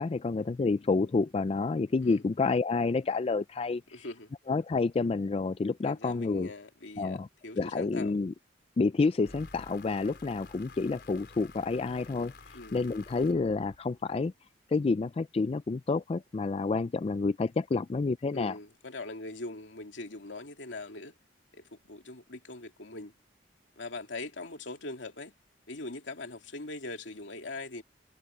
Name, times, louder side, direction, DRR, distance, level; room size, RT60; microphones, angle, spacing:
voice 1, 0.0-4.1 4.5-6.5 7.0-7.3 7.6-8.3 8.8-12.3 12.7-14.3 14.7-18.6, left 4 dB, 30° left, 0.3 m, -29 dB
voice 2, 3.9-4.3 5.8-7.2 7.4-8.1 12.5-12.8 18.3-21.1 21.5-23.1 23.8-25.3 25.7-27.8, left 2 dB, 80° left, 2.5 m, -41 dB
sound 1, 9.2-14.2, left 3 dB, 60° left, 4.9 m, -51 dB
head